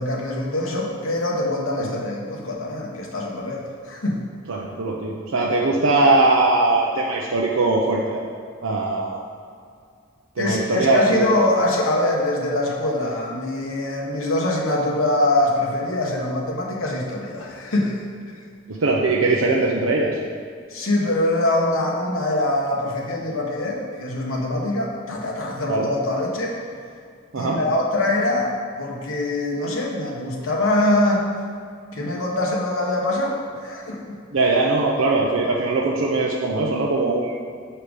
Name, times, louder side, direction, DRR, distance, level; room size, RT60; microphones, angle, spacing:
voice 1, 0.0-4.2 10.4-18.0 18.3-18.4 20.7-26.6 27.4-31.3 31.9-34.2, left 1 dB, 80° left, -1 dB, 1.1 m, -23 dB
voice 2, 4.5-8.2 8.6-9.2 10.4-11.3 18.7-20.2 25.7-25.9 27.3-27.6 34.3-37.4, right 2 dB, 75° right, -3 dB, 0.6 m, -20 dB
5.7 x 4.9 x 5.1 m, 2.2 s
head